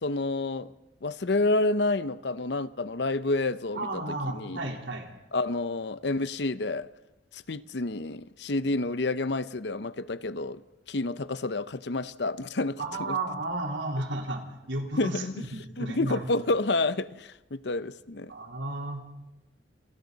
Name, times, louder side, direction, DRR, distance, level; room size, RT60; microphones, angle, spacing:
voice 1, 0.0-0.7 1.0-3.9 4.3-4.7 5.3-6.9 7.3-10.6 10.9-12.8 13.1-13.2 15.0-15.3 15.8-18.3, left 2 dB, 65° left, 0.7 m, -29 dB
voice 2, 3.7-5.1 12.8-16.3 18.3-19.0, right 2 dB, 80° right, 3.8 m, -33 dB
28.5 x 28.0 x 4.1 m
head